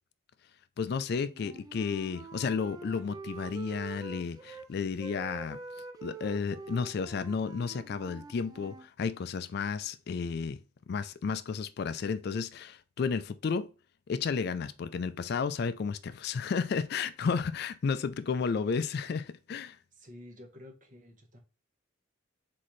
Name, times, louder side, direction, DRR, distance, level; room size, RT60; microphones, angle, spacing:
voice 1, 0.8-5.6 6.0-10.6 10.9-13.7 14.1-19.8, left 5 dB, 50° left, 0.3 m, -32 dB
Wind instrument woodwind instrument, 1.3-4.7 5.0-8.9, right 4 dB, 20° right, 0.4 m, -45 dB
voice 2, 19.9-21.4, left 1 dB, 40° right, 1.1 m, -50 dB
4.2 x 3.7 x 3.0 m
head